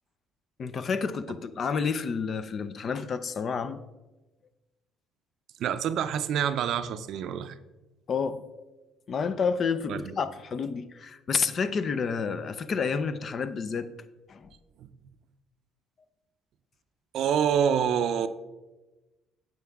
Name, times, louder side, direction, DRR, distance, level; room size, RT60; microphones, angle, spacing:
voice 1, 0.6-3.8 8.1-8.4 9.1-13.9 14.3-14.5, left 5 dB, 50° left, 0.5 m, -29 dB
voice 2, 5.6-7.5 9.9-10.1 14.8-14.9 17.1-18.3, right 8 dB, 65° right, 0.5 m, -27 dB
9.3 x 7.1 x 3.5 m
supercardioid pair, 80°, 0 cm